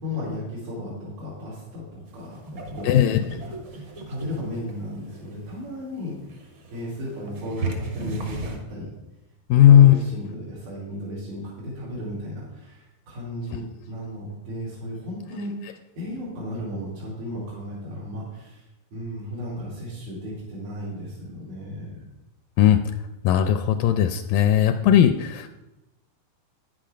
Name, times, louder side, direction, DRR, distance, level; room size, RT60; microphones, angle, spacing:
voice 1, 0.0-6.2 6.7-8.9 9.5-22.0, left 1 dB, 80° right, -8 dB, 4.7 m, -35 dB
sound 1, 2.1-8.6, right 2 dB, 55° right, 1.4 m, -36 dB
voice 2, 2.9-3.2 9.5-9.9 22.6-22.8 23.2-25.5, left 10 dB, 80° left, 8 dB, 2.1 m, -16 dB
10.5 x 8.8 x 5.0 m, 1.0 s
omnidirectional pair, 4.2 m